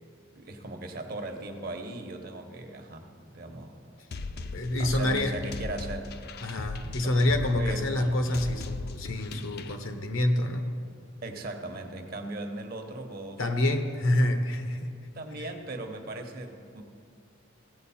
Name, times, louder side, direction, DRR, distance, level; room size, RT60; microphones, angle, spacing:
voice 1, 0.3-4.0 4.3-6.2 6.9-7.2 7.6-7.9 11.2-13.4 15.1-16.8, right 2 dB, 50° right, 5 dB, 0.9 m, -38 dB
sound 1, 4.1-9.8, left 3 dB, 50° left, 0.4 m, -38 dB
voice 2, 4.5-5.4 6.4-10.8 13.4-14.9 15.4-15.5, left 1 dB, 80° left, 7 dB, 0.9 m, -27 dB
16.0 x 7.8 x 4.2 m, 2.3 s
head